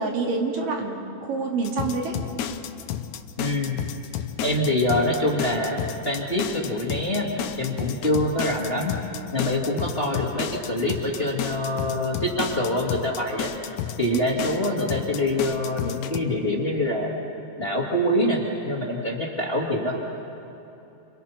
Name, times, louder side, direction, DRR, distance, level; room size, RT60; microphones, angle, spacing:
voice 1, 0.0-2.2 14.1-14.2, right 4 dB, 80° right, 0 dB, 4.2 m, -27 dB
sound 1, 1.6-16.2, left 10 dB, 70° left, 2.0 m, -32 dB
voice 2, 3.4-3.8 4.4-5.8 6.0-8.9 9.3-13.5 14.0-17.1 17.6-20.0, left 1 dB, 20° left, -2 dB, 2.1 m, -25 dB
29.5 x 27.0 x 5.9 m, 3.0 s
omnidirectional pair, 3.8 m